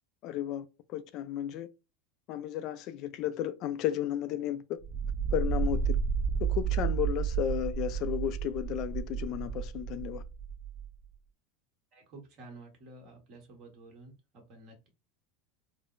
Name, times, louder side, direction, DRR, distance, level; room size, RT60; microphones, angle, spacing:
voice 1, 0.2-1.7 2.3-4.8 5.3-6.0 6.4-10.2, left 11 dB, 50° left, 0.3 m, -33 dB
sound 1, 4.8-10.9, right 7 dB, 10° right, 0.7 m, -32 dB
voice 2, 11.9-14.9, right 2 dB, 50° right, 1.3 m, -51 dB
3.7 x 2.0 x 2.4 m
supercardioid pair, 135°, 0 cm